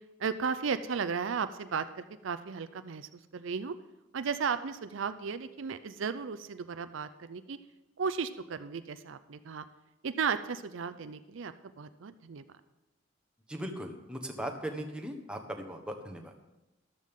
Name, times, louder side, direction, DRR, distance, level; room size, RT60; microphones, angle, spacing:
voice 1, 0.2-3.8 4.1-7.6 8.0-9.7 10.0-12.4, right 6 dB, 70° right, 12 dB, 0.5 m, -35 dB
voice 2, 13.5-16.2, equal, 5° right, 3 dB, 1.2 m, -38 dB
13.5 x 12.0 x 3.7 m, 1.0 s
head